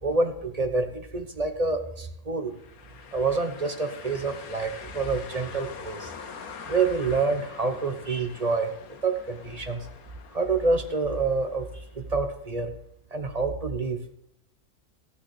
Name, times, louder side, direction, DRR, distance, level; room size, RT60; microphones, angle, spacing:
voice 1, 0.0-2.6 3.1-6.1 6.7-8.7 9.0-9.9 10.3-12.7 13.1-14.0, right 3 dB, 30° right, 7 dB, 0.9 m, -27 dB
sound 1, 2.5-12.3, left 6 dB, 70° left, 1.5 m, -44 dB
14.5 x 6.5 x 8.2 m, 0.74 s
omnidirectional pair, 1.6 m